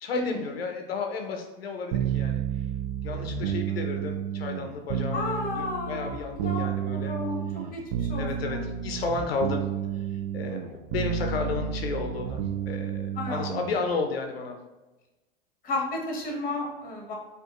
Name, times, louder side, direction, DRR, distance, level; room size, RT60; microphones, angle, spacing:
voice 1, 0.0-2.7 3.0-7.2 8.1-9.7 9.9-14.6, left 4 dB, 90° left, 4 dB, 0.5 m, -33 dB
sound 1, 1.9-13.8, right 8 dB, 50° right, 0.4 m, -31 dB
voice 2, 5.1-6.6 6.9-8.7 13.1-13.5 15.6-17.1, left 2 dB, 30° left, -1 dB, 1.1 m, -33 dB
4.9 x 2.5 x 2.4 m, 1.1 s
hypercardioid pair, 100°, 29 cm